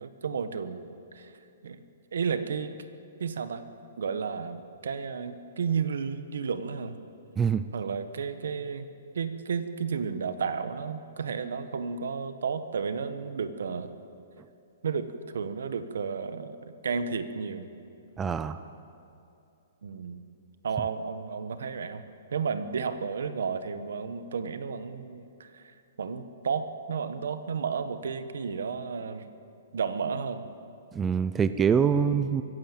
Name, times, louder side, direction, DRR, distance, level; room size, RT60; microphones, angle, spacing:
voice 1, 0.0-1.3 1.6-1.8 2.1-2.7 3.2-3.6 4.0-7.0 7.7-13.9 14.8-17.7 19.8-20.2 20.6-22.0 22.3-29.3 29.7-30.5 32.0-32.2, right 6 dB, 80° right, 10 dB, 1.3 m, -32 dB
voice 2, 7.4-7.7 18.2-18.6 30.9-32.4, right 7 dB, 10° right, 12 dB, 0.4 m, -24 dB
23.5 x 15.5 x 7.5 m, 2.7 s
hypercardioid pair, 170°, 0 cm